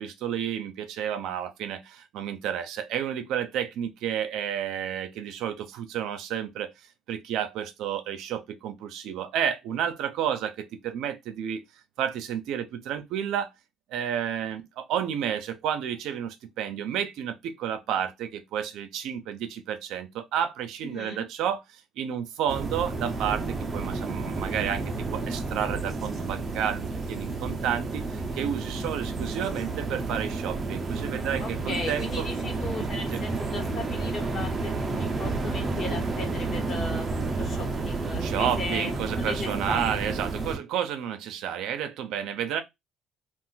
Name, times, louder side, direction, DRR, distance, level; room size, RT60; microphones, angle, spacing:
voice 1, 0.0-6.7 7.1-11.6 12.0-13.5 13.9-32.3 33.1-33.2 38.2-42.6, right 9 dB, 75° right, 0.6 m, -31 dB
voice 2, 20.8-21.2 31.4-40.0, left 3 dB, 45° left, 1.3 m, -37 dB
sound 1, 22.5-40.6, right 3 dB, 25° right, 0.6 m, -31 dB
2.5 x 2.5 x 3.8 m
cardioid pair, 115°, 0 cm